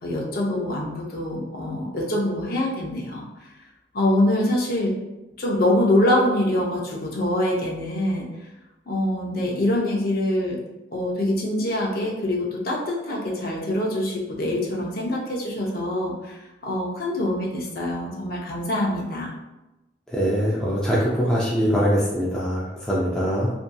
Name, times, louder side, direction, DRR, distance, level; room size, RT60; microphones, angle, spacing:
voice 1, 0.0-3.2 3.9-5.0 5.4-8.3 8.9-10.6 10.9-19.3, left 1 dB, 55° left, -3 dB, 0.6 m, -24 dB
voice 2, 20.1-23.5, equal, 5° left, -8 dB, 0.3 m, -22 dB
2.6 x 2.5 x 2.2 m, 0.99 s
head